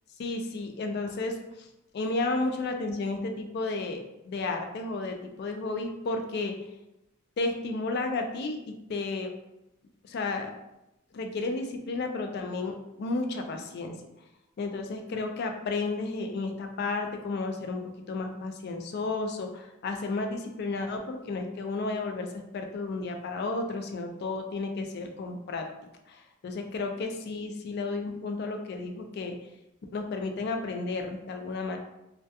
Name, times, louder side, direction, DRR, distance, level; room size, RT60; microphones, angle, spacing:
voice 1, 0.2-1.7 1.9-6.5 7.4-9.3 10.0-10.5 11.1-13.9 14.6-17.8 18.1-25.7 26.1-29.4 29.9-31.8, left 3 dB, 50° left, 4 dB, 0.3 m, -32 dB
2.2 x 2.2 x 2.7 m, 0.90 s
head